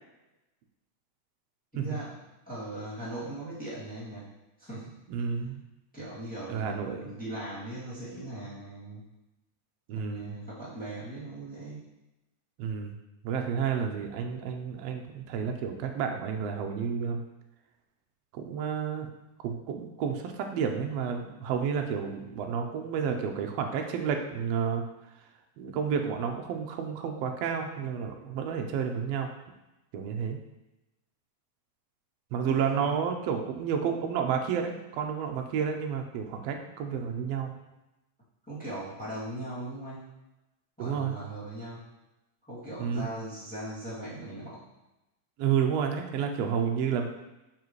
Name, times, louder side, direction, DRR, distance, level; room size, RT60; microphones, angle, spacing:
voice 1, 1.7-2.1 2.5-4.3 4.6-4.9 5.9-9.0 9.9-11.8 32.5-32.9 38.4-40.1 40.8-41.8 42.5-44.6, right 1 dB, 5° left, -10 dB, 1.8 m, -39 dB
voice 2, 5.1-5.6 6.5-7.1 9.9-10.3 12.6-12.9 13.2-17.2 18.3-19.1 19.4-24.8 25.6-29.3 29.9-30.4 32.3-37.5 40.8-41.1 42.8-43.1 45.4-47.1, right 7 dB, 75° right, 4 dB, 1.5 m, -30 dB
7.3 x 4.9 x 3.1 m, 0.98 s
omnidirectional pair, 3.4 m